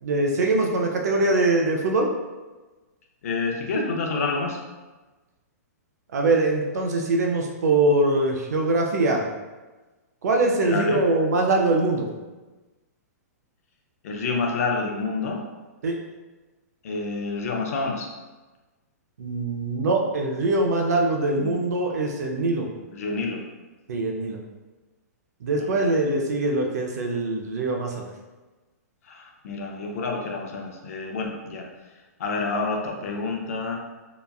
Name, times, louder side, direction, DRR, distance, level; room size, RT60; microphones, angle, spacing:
voice 1, 0.0-2.1 6.1-9.3 10.2-12.1 15.8-16.0 19.2-22.7 23.9-24.4 25.4-28.0, right 2 dB, 75° right, 2 dB, 0.5 m, -23 dB
voice 2, 3.2-4.6 10.7-11.0 14.0-15.4 16.8-18.1 21.4-21.5 22.9-23.4 25.5-25.9 29.0-31.7 32.2-33.8, left 3 dB, 60° left, 1 dB, 0.5 m, -28 dB
2.9 x 2.3 x 2.3 m, 1.2 s
hypercardioid pair, 155°, 9 cm